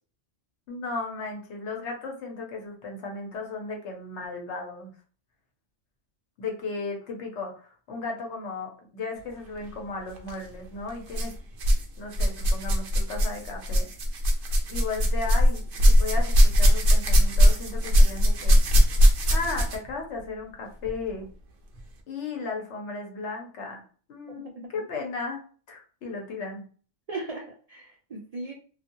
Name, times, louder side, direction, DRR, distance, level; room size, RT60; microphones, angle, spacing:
voice 1, 0.7-4.9 6.4-11.3 12.0-13.9 14.7-18.6 19.3-21.3 22.1-23.8 24.1-25.4 25.7-26.7, left 3 dB, 70° left, 2 dB, 1.0 m, -35 dB
sound 1, 10.2-10.3 11.1-11.8 12.1-19.9 20.8-20.9 21.7-21.8, equal, 55° right, 0.7 m, -20 dB
voice 2, 24.3-24.8 27.1-28.5, right 2 dB, 90° right, 0 dB, 0.3 m, -38 dB
2.7 x 2.5 x 2.6 m, 0.41 s
omnidirectional pair, 1.3 m